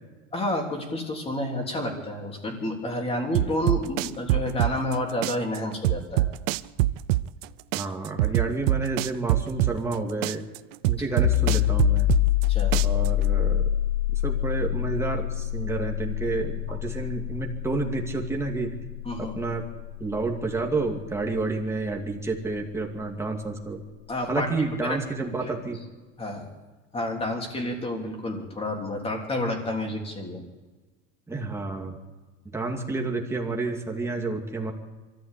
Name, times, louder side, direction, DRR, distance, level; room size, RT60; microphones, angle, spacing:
voice 1, 0.3-6.3 12.5-12.8 16.7-16.8 19.0-19.3 24.1-24.5 24.8-25.5 26.2-26.5 26.9-30.4, left 1 dB, 15° left, 1 dB, 3.4 m, -30 dB
sound 1, 3.3-5.0 5.2-7.5 7.7-10.0 10.2-12.5 12.7-13.3, right 17 dB, 90° right, 0.7 m, -24 dB
voice 2, 7.7-10.4 10.9-12.1 12.8-13.6 14.2-18.7 19.2-19.6 20.0-23.8 24.3-25.8 31.3-32.0 32.5-34.7, right 3 dB, 5° right, 0 dB, 2.5 m, -30 dB
sound 2, 11.2-22.7, left 14 dB, 80° left, 0.9 m, -27 dB
23.5 x 14.5 x 8.4 m, 1.3 s
cardioid pair, 150°, 36 cm